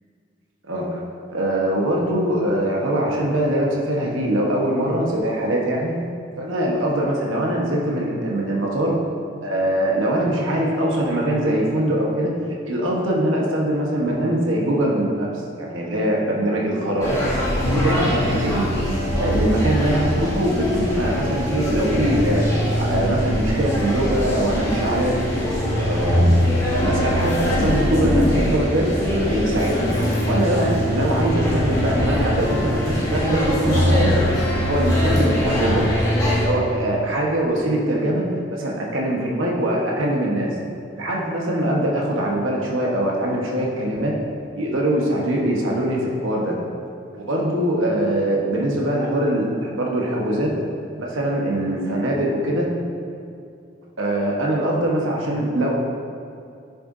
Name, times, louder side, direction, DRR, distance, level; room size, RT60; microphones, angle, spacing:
voice 1, 0.7-1.0 1.3-6.0 6.4-9.0 9.4-12.3 12.7-15.3 15.6-17.2 17.6-18.6 19.1-22.5 22.8-25.2 25.8-26.4 26.7-29.9 30.2-34.1 34.5-35.9 36.4-38.2 38.5-40.6 41.0-44.1 44.6-46.5 47.1-50.5 51.0-52.7 54.0-55.7, right 1 dB, 85° right, -2 dB, 1.2 m, -22 dB
sound 1, 17.0-36.5, equal, 15° left, 1.6 m, -22 dB
11.0 x 6.7 x 2.7 m, 2.4 s
head